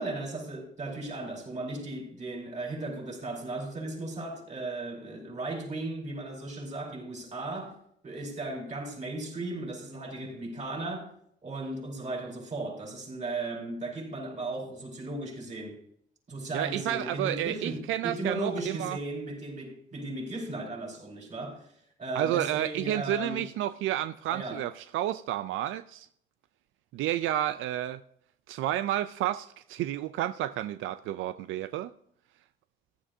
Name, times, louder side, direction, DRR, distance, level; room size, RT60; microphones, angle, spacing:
voice 1, 0.0-7.8 8.0-11.1 11.4-15.8 16.3-23.5 24.3-24.7, right 2 dB, 35° right, 5.4 m, -36 dB
voice 2, 16.5-19.0 22.1-26.1 26.9-28.0 28.5-31.9, right 13 dB, 85° right, 0.4 m, -31 dB
15.0 x 11.5 x 2.7 m
cardioid pair, 90°, 20 cm